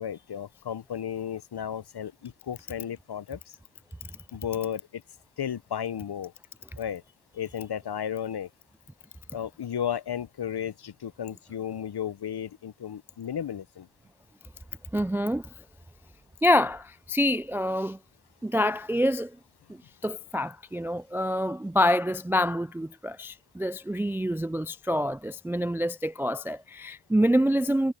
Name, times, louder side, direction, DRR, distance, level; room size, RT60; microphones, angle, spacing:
voice 1, 0.0-3.6 4.3-5.0 5.4-6.3 6.8-7.0 7.3-8.5 9.3-13.9, left 9 dB, 50° left, 1.0 m, -34 dB
voice 2, 14.9-15.5 16.4-18.0 18.4-19.3 20.0-27.9, equal, 5° right, 0.4 m, -26 dB
supercardioid pair, 45°, 50 cm